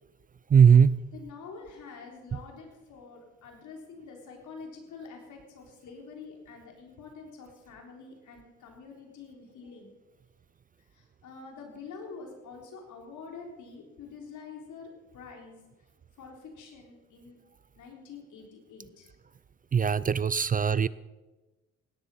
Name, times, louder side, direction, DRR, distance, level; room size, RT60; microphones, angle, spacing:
voice 1, 0.5-0.9 19.7-20.9, right 7 dB, 30° right, 18 dB, 0.4 m, -20 dB
voice 2, 1.1-10.0 10.8-15.6 16.2-17.4 17.8-19.1, left 5 dB, 75° left, 1 dB, 3.8 m, -46 dB
17.0 x 10.5 x 5.6 m, 1.1 s
cardioid pair, 90°, 30 cm